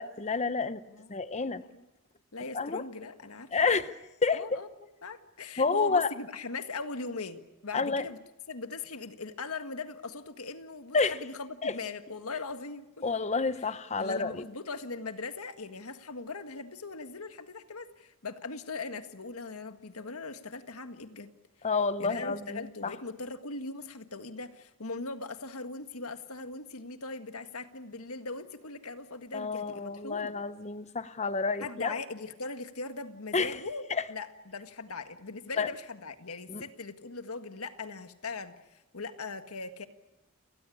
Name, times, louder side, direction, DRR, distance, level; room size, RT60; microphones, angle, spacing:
voice 1, 0.0-0.8 1.1-1.6 2.5-2.8 3.5-3.9 4.2-4.6 5.6-6.1 7.7-8.0 10.9-11.2 11.6-11.7 13.0-14.4 21.6-22.9 29.3-31.9 33.3-33.6 33.9-34.0 35.6-35.7 36.5-36.6, left 4 dB, 30° left, 0.8 m, -29 dB
voice 2, 0.9-1.8 2.3-3.9 4.3-4.7 5.0-8.2 8.5-12.8 14.0-21.3 22.0-30.3 31.6-33.8 34.1-39.9, left 3 dB, 80° left, 1.8 m, -40 dB
30.0 x 19.0 x 8.6 m
head